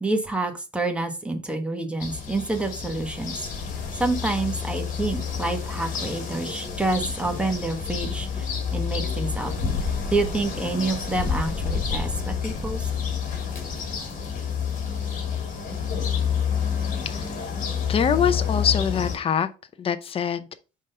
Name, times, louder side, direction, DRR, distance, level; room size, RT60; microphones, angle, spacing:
voice 1, 0.0-3.5 3.9-8.5 8.7-9.5 10.1-12.9, right 2 dB, 5° right, 1.3 m, -28 dB
sound 1, 2.0-19.2, left 6 dB, 50° left, 2.1 m, -29 dB
voice 2, 17.0-17.5 17.9-19.5 19.8-20.5, left 7 dB, 35° left, 0.7 m, -24 dB
5.3 x 3.7 x 5.4 m
cardioid pair, 110°, 17 cm